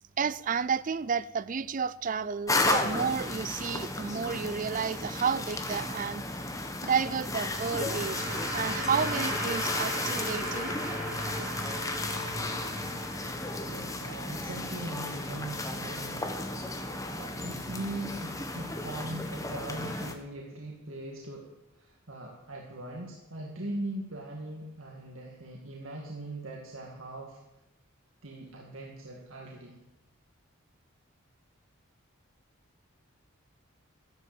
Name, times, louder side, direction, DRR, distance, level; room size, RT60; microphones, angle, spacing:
voice 1, 0.2-6.2 6.8-10.7, right 6 dB, 40° right, 0.4 m, -31 dB
sound 1, 2.5-20.1, left 2 dB, 15° left, 1.2 m, -34 dB
sound 2, 6.9-14.0, equal, 10° right, 4.0 m, -37 dB
voice 2, 13.6-16.3 17.1-21.5 21.7-27.4 28.2-29.8, right 1 dB, 70° right, 2.1 m, -40 dB
13.5 x 12.0 x 7.7 m
head